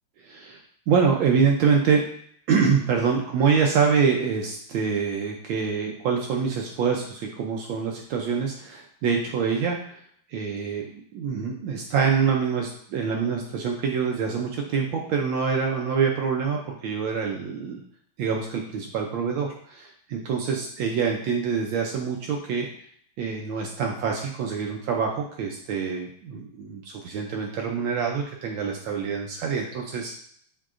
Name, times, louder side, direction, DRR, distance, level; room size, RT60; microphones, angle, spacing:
voice 1, 0.2-0.6 0.9-2.0 2.5-10.0 10.3-17.8 18.2-22.7 23.2-30.2, right 6 dB, 75° right, 0 dB, 1.3 m, -25 dB
7.2 x 2.8 x 2.4 m, 0.64 s
omnidirectional pair, 2.3 m